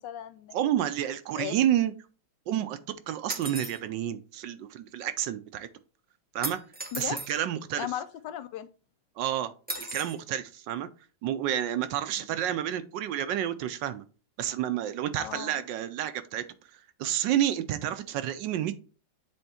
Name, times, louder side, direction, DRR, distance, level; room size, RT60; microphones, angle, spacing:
voice 1, 0.0-0.5 1.3-1.5 6.9-7.2 7.8-8.7 12.2-12.4 15.2-15.6, left 11 dB, 75° left, 11 dB, 1.1 m, -36 dB
voice 2, 0.5-1.9 2.5-5.7 6.3-6.6 7.0-7.9 9.2-10.9 11.2-14.0 14.4-16.5 16.7-18.8, right 11 dB, 75° right, 12 dB, 1.2 m, -30 dB
sound 1, 3.3-3.8 6.4-7.3 9.7-10.2, right 1 dB, 15° right, 0.3 m, -36 dB
7.8 x 3.5 x 4.2 m, 0.36 s
omnidirectional pair, 2.1 m